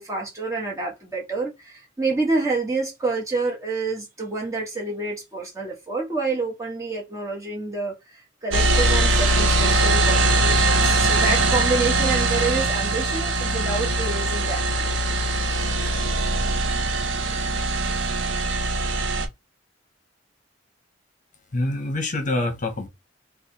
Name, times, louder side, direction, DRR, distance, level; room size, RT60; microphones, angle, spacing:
voice 1, 0.0-15.0, right 3 dB, 15° right, 1.4 m, -28 dB
sound 1, 8.5-19.2, right 2 dB, 90° right, 0.7 m, -21 dB
voice 2, 21.5-22.9, left 2 dB, 45° left, 1.0 m, -25 dB
3.2 x 2.4 x 3.9 m
head